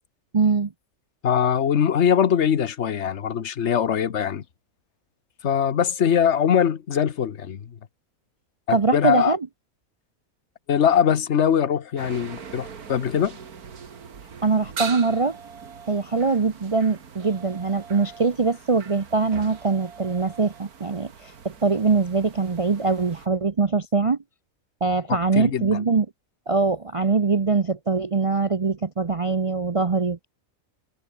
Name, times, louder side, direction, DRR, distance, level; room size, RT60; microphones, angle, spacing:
voice 1, 0.3-0.7 8.7-9.4 14.4-15.4 15.9-24.2 24.8-26.1 26.5-30.3, right 4 dB, 40° right, 0.5 m, -22 dB
voice 2, 1.2-4.4 5.4-7.7 8.7-9.3 10.7-13.4 25.3-25.8, left 8 dB, 50° left, 1.3 m, -22 dB
sound 1, 12.0-23.3, right 6 dB, 80° right, 2.3 m, -41 dB
omnidirectional pair, 1.5 m